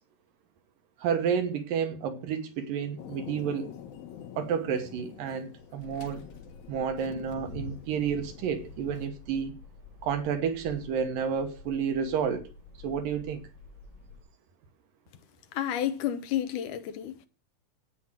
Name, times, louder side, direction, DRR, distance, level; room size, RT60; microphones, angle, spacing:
voice 1, 1.0-3.7 4.4-6.3 6.7-9.6 10.0-12.5 12.8-13.4, right 7 dB, 75° right, 2.9 m, -30 dB
Thunder, 3.0-9.1, left 7 dB, 85° left, 3.1 m, -45 dB
sound 1, 5.8-14.2, left 4 dB, 25° left, 6.5 m, -51 dB
voice 2, 15.5-17.3, left 11 dB, 70° left, 2.4 m, -31 dB
9.0 x 8.1 x 7.5 m
omnidirectional pair, 4.0 m